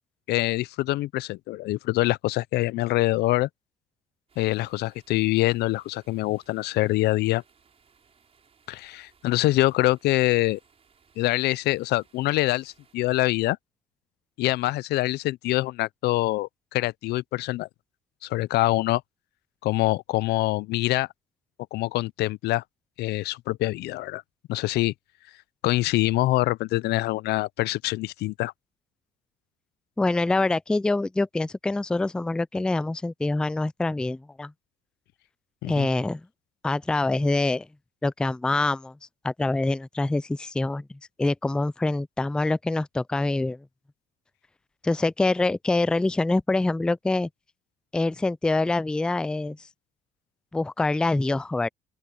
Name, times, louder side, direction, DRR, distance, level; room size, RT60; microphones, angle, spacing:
voice 1, 0.3-3.5 4.4-7.4 8.7-10.6 11.2-13.6 14.4-17.7 18.2-19.0 19.6-21.1 21.7-22.6 23.0-24.2 24.5-24.9 25.6-28.5 35.6-35.9, left 18 dB, 75° left, 0.5 m, -25 dB
sound 1, 4.3-13.0, right 6 dB, 35° right, 5.4 m, -63 dB
voice 2, 30.0-34.5 35.6-36.3 36.6-37.7 38.0-39.0 39.2-40.9 41.2-43.7 44.8-47.3 47.9-49.6 50.5-51.7, left 2 dB, 5° left, 0.3 m, -25 dB
open air
cardioid pair, 110°, 17 cm